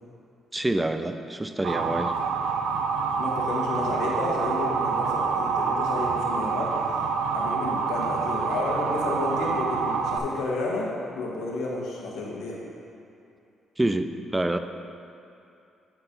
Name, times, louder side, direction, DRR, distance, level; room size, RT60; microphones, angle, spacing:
voice 1, 0.5-2.1 13.8-14.6, right 1 dB, 15° right, 8 dB, 0.4 m, -26 dB
Motor vehicle (road) / Siren, 1.6-10.2, right 5 dB, 85° right, 0.5 m, -27 dB
voice 2, 3.2-6.9 7.3-10.9 11.1-12.6, left 3 dB, 80° left, -3 dB, 1.4 m, -31 dB
8.6 x 4.5 x 5.2 m, 2.6 s
cardioid pair, 90°, 0 cm